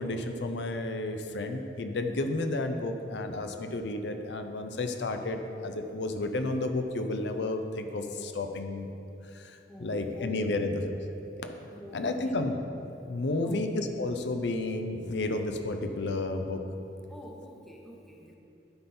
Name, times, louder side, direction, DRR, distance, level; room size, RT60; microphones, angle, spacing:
voice 1, 0.0-8.9 9.3-11.0 11.4-11.5 11.9-12.6 13.1-16.6, left 2 dB, 80° left, 6 dB, 0.6 m, -32 dB
voice 2, 9.7-10.7 11.7-12.4 13.4-13.6 17.1-18.4, left 1 dB, ahead, -1 dB, 0.9 m, -47 dB
11.5 x 4.4 x 5.5 m, 2.9 s
head